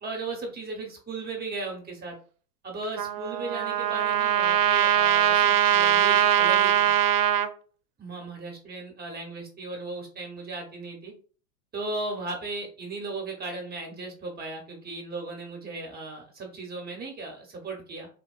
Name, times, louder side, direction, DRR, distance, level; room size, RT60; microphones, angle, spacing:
voice 1, 0.0-2.2 2.6-6.9 8.0-11.1 11.7-18.1, right 3 dB, 20° right, 2 dB, 0.8 m, -36 dB
Trumpet, 3.0-7.5, right 9 dB, 70° right, 0.5 m, -22 dB
3.6 x 2.1 x 2.3 m, 0.40 s
figure-of-eight pair, 90°, 47 cm